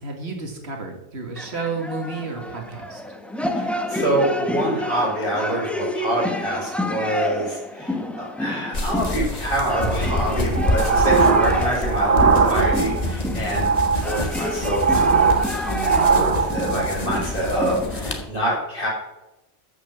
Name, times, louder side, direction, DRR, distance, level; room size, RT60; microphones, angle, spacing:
voice 1, 0.0-3.0, right 3 dB, 75° right, 2 dB, 2.1 m, -31 dB
sound 1, 1.4-18.3, left 1 dB, ahead, 0.8 m, -30 dB
voice 2, 3.4-18.9, right 1 dB, 55° left, -4 dB, 5.6 m, -26 dB
sound 2, 8.7-18.2, left 1 dB, 40° left, 1.6 m, -27 dB
sound 3, 10.5-13.1 13.4-17.0, right 5 dB, 40° right, 0.8 m, -20 dB
14.0 x 6.0 x 7.0 m, 0.99 s
omnidirectional pair, 1.1 m